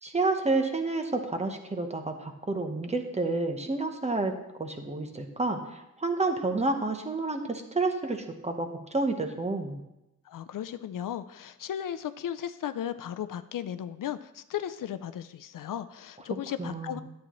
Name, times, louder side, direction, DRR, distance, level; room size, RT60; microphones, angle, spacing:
voice 1, 0.0-4.3 4.6-9.8 16.6-17.0, right 3 dB, 20° right, 5 dB, 0.8 m, -30 dB
voice 2, 10.3-17.0, left 10 dB, 80° left, 11 dB, 0.5 m, -35 dB
11.5 x 8.5 x 3.0 m, 0.91 s
wide cardioid pair, 150°, 32 cm